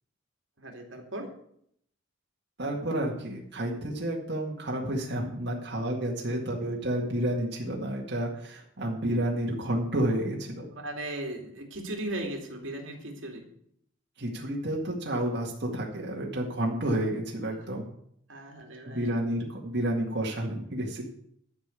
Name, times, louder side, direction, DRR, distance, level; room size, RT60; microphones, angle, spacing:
voice 1, 0.6-1.3 10.8-13.5 17.5-17.7 18.3-19.2, right 1 dB, 75° right, 2 dB, 2.6 m, -37 dB
voice 2, 2.6-10.7 14.2-17.9 18.8-21.0, right 1 dB, 55° right, -2 dB, 2.1 m, -30 dB
12.0 x 5.3 x 8.4 m, 0.68 s
head